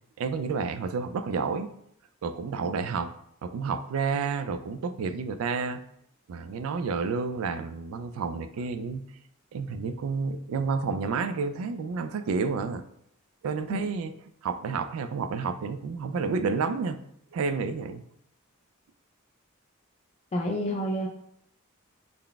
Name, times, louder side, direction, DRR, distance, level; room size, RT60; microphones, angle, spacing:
voice 1, 0.2-1.7 2.2-3.1 3.4-5.8 6.3-9.0 9.5-12.8 13.4-14.1 14.4-17.0 17.3-18.0, right 5 dB, 75° right, 11 dB, 0.3 m, -30 dB
voice 2, 20.3-21.1, equal, 30° left, 0 dB, 0.3 m, -28 dB
3.9 x 2.2 x 3.4 m, 0.73 s
head